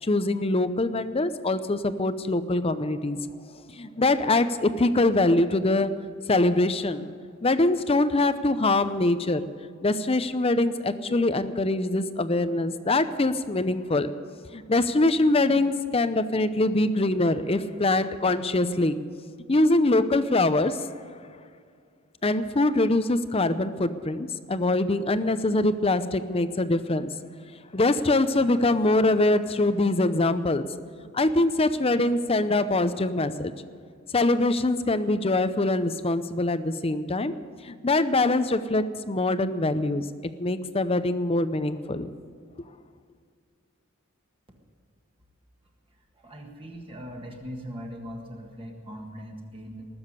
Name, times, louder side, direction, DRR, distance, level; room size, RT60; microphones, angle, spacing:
voice 1, 0.0-3.2 3.7-6.0 6.3-7.0 7.4-9.5 9.8-14.1 14.5-19.0 19.5-20.9 22.2-27.2 27.7-30.6 31.1-33.5 34.1-37.4 37.6-40.1 40.4-42.1, left 2 dB, 25° left, 12 dB, 0.6 m, -23 dB
voice 2, 46.1-49.9, equal, 25° right, 0 dB, 1.7 m, -40 dB
19.5 x 7.2 x 9.7 m, 2.1 s
head